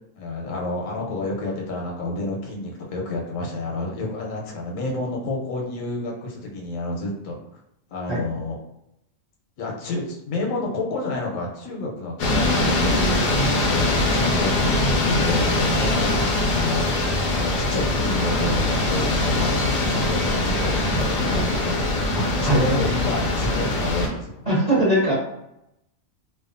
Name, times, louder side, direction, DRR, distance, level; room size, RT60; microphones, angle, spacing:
voice 1, 0.2-7.4 7.9-8.6 9.6-13.4 13.7-24.5, left 2 dB, 85° left, -1 dB, 1.1 m, -29 dB
sound 1, 12.2-24.1, left 2 dB, 60° left, 0.6 m, -22 dB
voice 2, 24.5-25.1, right 1 dB, 35° right, -8 dB, 1.0 m, -20 dB
2.7 x 2.3 x 2.5 m, 0.82 s
omnidirectional pair, 1.4 m